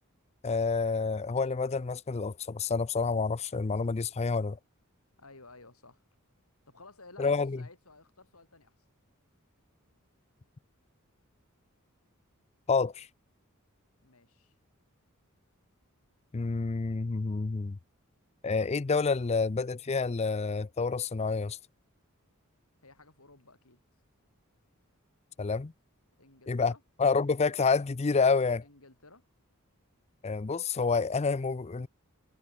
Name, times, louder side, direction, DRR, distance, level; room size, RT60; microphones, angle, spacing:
voice 1, 0.4-4.6 7.2-7.6 12.7-13.1 16.3-17.8 18.4-21.6 25.4-25.7 26.5-26.7 27.0-28.6 30.2-31.9, left 4 dB, 30° left, 0.5 m, -28 dB
voice 2, 5.2-6.0 6.7-8.7 14.0-14.6 22.8-23.8 26.2-26.8 28.6-29.2, left 3 dB, 80° left, 6.2 m, -55 dB
head